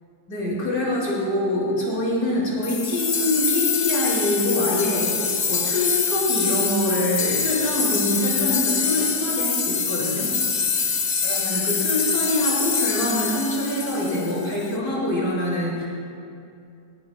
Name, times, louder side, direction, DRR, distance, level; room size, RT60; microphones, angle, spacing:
voice 1, 0.3-5.1 5.5-10.3 10.8-11.0 11.2-15.9, left 1 dB, 75° left, -8 dB, 5.5 m, -24 dB
sound 1, 2.6-14.6, left 6 dB, 45° left, 0.7 m, -25 dB
27.5 x 18.5 x 2.2 m, 2.4 s
omnidirectional pair, 1.8 m